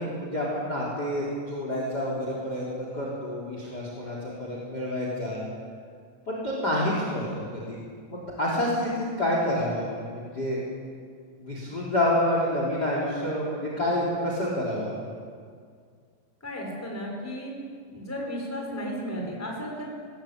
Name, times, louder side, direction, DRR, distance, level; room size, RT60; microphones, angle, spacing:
voice 1, 0.0-5.4 6.3-7.8 8.1-10.6 11.4-14.9, left 1 dB, 20° left, -3 dB, 3.6 m, -28 dB
voice 2, 16.4-17.5 17.9-19.9, equal, 5° left, -1 dB, 4.2 m, -34 dB
20.0 x 17.0 x 8.8 m, 2.1 s
omnidirectional pair, 5.7 m